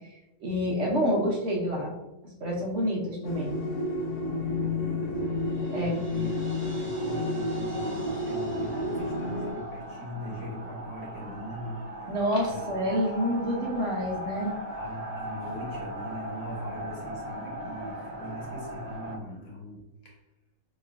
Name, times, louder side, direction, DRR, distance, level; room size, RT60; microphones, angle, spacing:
voice 1, 0.4-1.9 2.4-3.5 5.7-6.0 12.1-14.5, equal, 60° right, -2 dB, 1.1 m, -28 dB
sound 1, 3.2-9.5, left 2 dB, 85° left, 1.3 m, -31 dB
voice 2, 4.3-12.2 12.5-12.8 14.8-20.2, left 1 dB, 55° left, -3 dB, 1.3 m, -41 dB
Crash cymbal, 5.1-10.1, right 1 dB, 30° right, 1.1 m, -50 dB
sound 2, 6.1-19.2, right 1 dB, 85° right, 1.4 m, -39 dB
4.3 x 3.0 x 2.5 m, 0.96 s
omnidirectional pair, 1.6 m